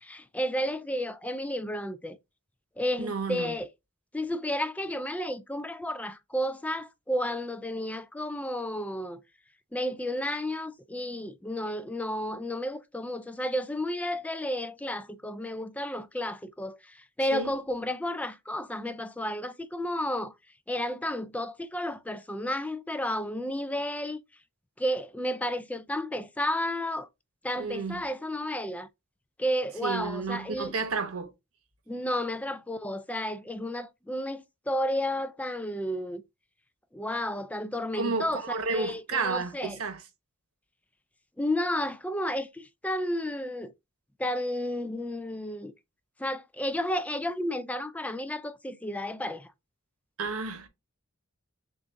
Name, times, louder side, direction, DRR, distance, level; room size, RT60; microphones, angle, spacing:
voice 1, 0.0-2.2 2.8-3.7 4.1-9.2 9.7-20.3 20.7-24.2 24.8-27.1 27.4-28.9 29.4-30.7 31.9-36.2 36.9-38.4 38.7-39.8 41.4-43.7 44.2-45.7 46.2-49.5, left 1 dB, 5° left, 0.4 m, -32 dB
voice 2, 3.0-3.5 17.3-17.5 27.6-28.0 29.8-31.3 37.9-40.0 50.2-50.7, right 4 dB, 85° right, 1.0 m, -31 dB
6.8 x 2.5 x 2.6 m
head